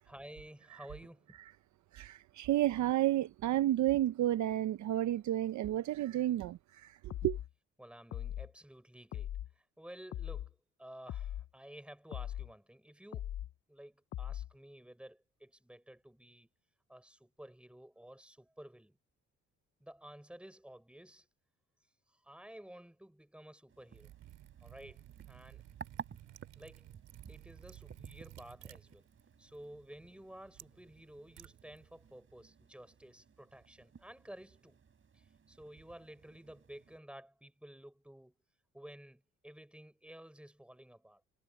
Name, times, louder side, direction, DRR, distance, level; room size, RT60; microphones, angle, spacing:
voice 1, 0.0-1.4 7.8-13.3 13.7-16.5 16.9-19.0 19.8-21.3 22.1-24.1 24.6-25.0 25.3-25.6 26.6-26.9 27.3-29.0 29.4-34.8 35.1-38.3 38.7-41.2, right 1 dB, 5° right, 6.4 m, -53 dB
voice 2, 1.9-7.4, right 13 dB, 70° right, 0.7 m, -31 dB
sound 1, 7.1-7.5 8.1-8.5 9.1-9.5 10.1-10.5 11.1-11.5 12.1-12.5 13.1-13.5 14.1-14.5, left 11 dB, 55° left, 0.6 m, -40 dB
sound 2, 23.7-37.0, right 6 dB, 45° right, 4.5 m, -55 dB
Liquid, 23.9-32.2, right 14 dB, 90° right, 4.6 m, -56 dB
cardioid pair, 90°, 30 cm